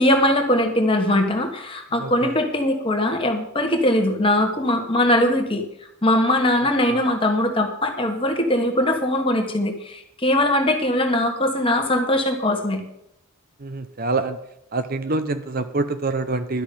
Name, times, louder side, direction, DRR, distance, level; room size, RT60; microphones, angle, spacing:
voice 1, 0.0-5.6 6.0-12.8, left 1 dB, 25° left, 4 dB, 1.5 m, -21 dB
voice 2, 2.0-2.3 13.6-14.4 14.7-16.6, right 3 dB, 40° right, 10 dB, 0.7 m, -26 dB
12.0 x 6.1 x 8.5 m, 0.77 s
head